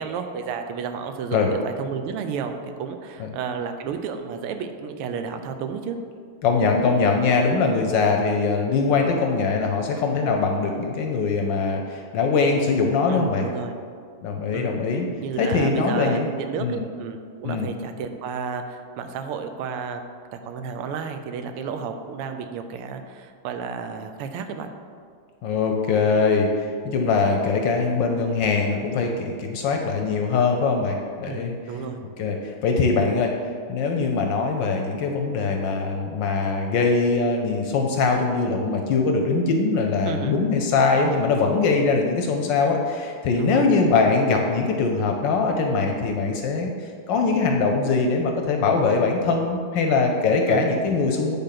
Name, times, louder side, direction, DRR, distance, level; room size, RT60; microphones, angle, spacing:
voice 1, 0.0-6.0 13.1-13.8 14.5-24.7 31.2-32.0 40.0-40.4 43.4-43.7 50.5-50.7, right 6 dB, 85° right, 7 dB, 1.6 m, -32 dB
voice 2, 6.4-13.4 14.2-15.1 15.4-16.3 16.6-16.8 17.4-17.7 25.4-31.5 32.2-33.4 33.7-51.4, left 4 dB, 70° left, 3 dB, 1.2 m, -22 dB
8.7 x 3.7 x 5.8 m, 2.2 s
omnidirectional pair, 2.4 m